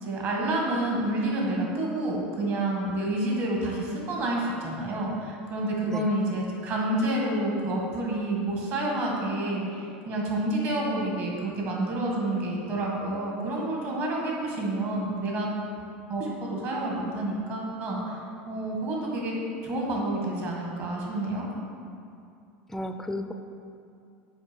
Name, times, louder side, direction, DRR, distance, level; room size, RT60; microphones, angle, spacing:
voice 1, 0.0-15.5 16.1-18.2 18.5-19.3 19.6-21.4, right 1 dB, 45° right, -2 dB, 1.8 m, -29 dB
voice 2, 22.7-23.3, left 1 dB, 5° left, 7 dB, 0.4 m, -33 dB
6.3 x 4.9 x 5.3 m, 2.5 s
supercardioid pair, 120°, 6 cm